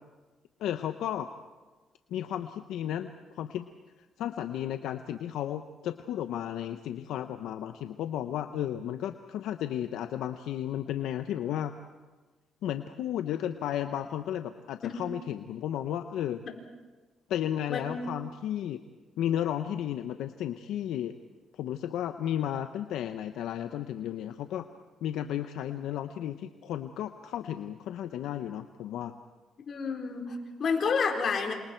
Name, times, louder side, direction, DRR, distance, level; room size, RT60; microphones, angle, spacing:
voice 1, 0.6-1.3 2.1-3.1 3.4-3.7 4.2-11.7 12.6-16.4 17.3-18.8 19.2-21.1 21.6-24.7 25.0-29.2, left 11 dB, 85° left, 8 dB, 0.8 m, -33 dB
voice 2, 29.7-31.5, left 5 dB, 55° left, 2 dB, 4.2 m, -29 dB
28.5 x 27.5 x 4.5 m, 1.3 s
cardioid pair, 90°, 0 cm